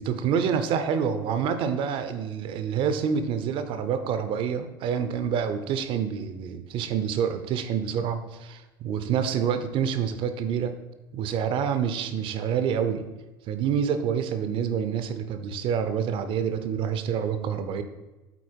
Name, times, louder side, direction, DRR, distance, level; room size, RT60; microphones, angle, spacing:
voice 1, 0.0-10.7 11.1-13.0 13.5-17.8, right 7 dB, 45° right, 9 dB, 0.8 m, -27 dB
8.2 x 4.3 x 4.6 m, 1.1 s
figure-of-eight pair, 70°, 12 cm